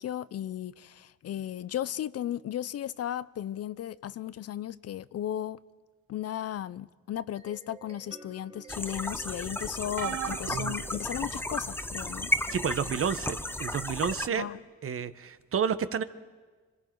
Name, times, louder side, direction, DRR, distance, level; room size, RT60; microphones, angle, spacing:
voice 1, 0.0-5.6 6.1-12.3 14.3-14.6, left 11 dB, 55° left, 0.6 m, -35 dB
sound 1, 7.1-11.5, right 2 dB, 20° right, 2.8 m, -52 dB
sound 2, 8.7-14.3, left 1 dB, 5° left, 0.8 m, -34 dB
sound 3, 10.0-11.8 12.5-12.8 14.1-14.2, right 12 dB, 65° right, 0.6 m, -38 dB
voice 2, 12.5-14.5 14.8-16.0, right 7 dB, 45° right, 1.1 m, -30 dB
26.0 x 25.0 x 4.6 m
cardioid pair, 90°, 30 cm